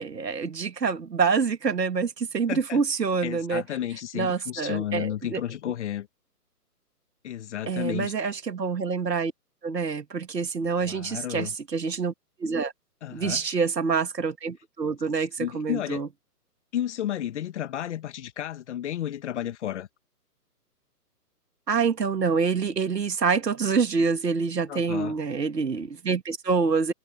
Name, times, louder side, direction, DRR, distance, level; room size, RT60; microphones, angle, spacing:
voice 1, 0.0-3.6 4.1-5.4 7.7-9.3 9.6-12.1 12.4-12.7 13.1-16.1 21.7-26.9, right 5 dB, 90° right, 2.5 m, -26 dB
voice 2, 2.5-2.8 3.2-6.1 7.2-8.1 10.8-11.6 13.0-13.6 15.4-16.0 16.7-19.9 24.7-25.1, left 11 dB, 45° left, 1.9 m, -32 dB
hypercardioid pair, 150°, 48 cm